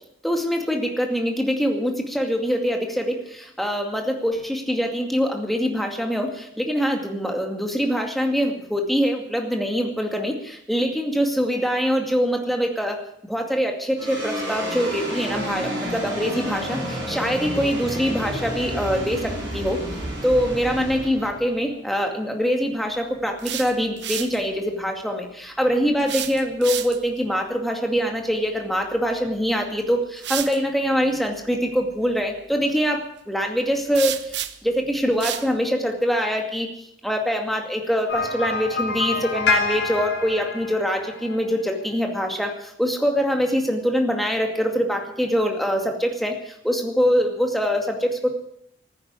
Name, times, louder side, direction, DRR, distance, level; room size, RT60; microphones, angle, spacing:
voice 1, 0.2-13.0 13.3-19.8 20.2-33.0 33.3-34.2 34.6-36.7 37.0-48.3, equal, ahead, 2 dB, 2.2 m, -24 dB
sound 1, 14.0-22.5, right 1 dB, 20° right, 7.9 m, -31 dB
sound 2, 23.2-24.4 26.0-27.2 29.2-29.4 30.2-30.6 33.9-34.7 35.2-35.5, right 11 dB, 80° right, 1.0 m, -30 dB
sound 3, 38.1-41.4, left 3 dB, 80° left, 3.8 m, -26 dB
14.5 x 9.8 x 9.6 m, 0.75 s
head